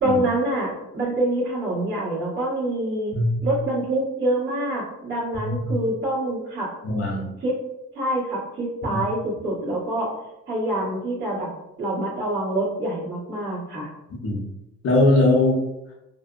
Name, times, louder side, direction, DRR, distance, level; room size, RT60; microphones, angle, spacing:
voice 1, 0.0-3.1 3.4-6.7 7.4-7.5 7.9-10.1 10.5-11.5 11.8-13.9, right 1 dB, 35° right, -11 dB, 1.3 m, -26 dB
voice 2, 3.1-3.5 5.4-5.7 6.8-7.3 8.9-9.0 14.1-14.4 14.8-15.6, left 2 dB, 50° left, -3 dB, 0.6 m, -21 dB
2.5 x 2.0 x 2.4 m, 0.91 s
cardioid pair, 90°, 30 cm